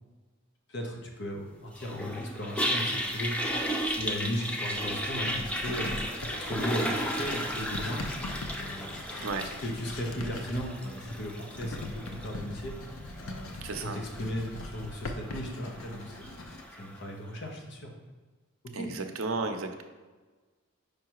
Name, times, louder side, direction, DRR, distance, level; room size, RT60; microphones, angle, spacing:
voice 1, 0.7-3.3 3.8-6.0 6.3-8.1 8.5-9.0 9.4-12.7 13.2-16.3 16.8-17.9 18.7-18.9, equal, 55° left, 1 dB, 1.0 m, -36 dB
Toilet flush, 1.7-17.0, equal, 5° left, 0.4 m, -35 dB
Writing, 4.7-16.6, left 2 dB, 80° left, 0.6 m, -41 dB
voice 2, 13.6-14.0 18.7-19.8, right 3 dB, 80° right, 5 dB, 0.6 m, -33 dB
5.2 x 4.7 x 4.7 m, 1.3 s
head